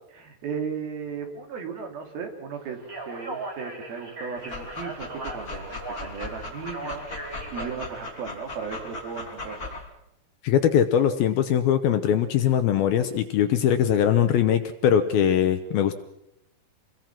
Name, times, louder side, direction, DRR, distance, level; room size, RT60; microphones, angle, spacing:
voice 1, 0.1-9.6, right 6 dB, 55° right, 4 dB, 4.3 m, -36 dB
Speech, 2.8-8.1, right 2 dB, 20° right, 3.8 m, -38 dB
Dog, 4.4-9.8, left 2 dB, 20° left, 3.1 m, -38 dB
voice 2, 10.4-15.9, left 9 dB, 75° left, 8 dB, 2.3 m, -21 dB
27.5 x 22.0 x 6.0 m, 0.82 s
omnidirectional pair, 5.3 m